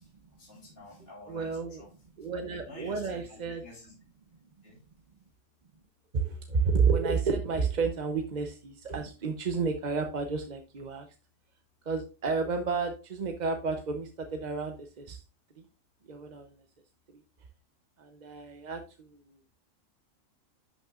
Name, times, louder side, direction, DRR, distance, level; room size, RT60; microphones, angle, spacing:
voice 1, 0.0-1.9 2.6-3.9 4.6-4.8, left 2 dB, 50° left, 3.3 m, -50 dB
voice 2, 1.3-1.8 2.2-3.6 6.1-11.1 11.9-15.2 15.6-15.7 16.1-16.6 17.1-17.2 18.0-19.4, right 5 dB, 45° right, 0.7 m, -31 dB
11.0 x 6.0 x 2.4 m
omnidirectional pair, 1.3 m